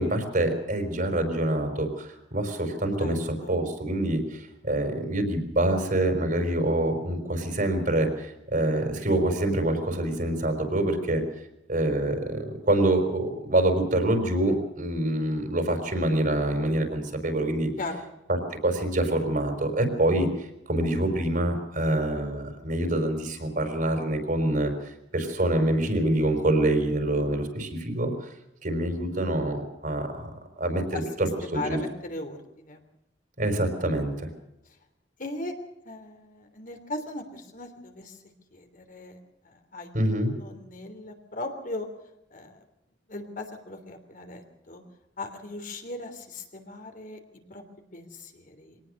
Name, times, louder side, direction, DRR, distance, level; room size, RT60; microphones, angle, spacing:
voice 1, 0.0-3.2 3.5-11.2 11.7-17.7 18.3-18.4 18.6-24.7 25.1-28.3 28.6-30.3 30.6-31.8 33.4-34.3 39.9-40.3, right 1 dB, 50° right, 6 dB, 4.9 m, -26 dB
voice 2, 31.4-32.8 35.2-35.5 35.8-38.2 38.5-39.2 39.4-39.9 40.4-41.9 42.3-42.6 43.1-44.8 45.2-47.2 47.5-47.6 47.9-48.8, left 2 dB, 50° left, 6 dB, 3.2 m, -38 dB
23.5 x 18.5 x 6.6 m, 0.84 s
head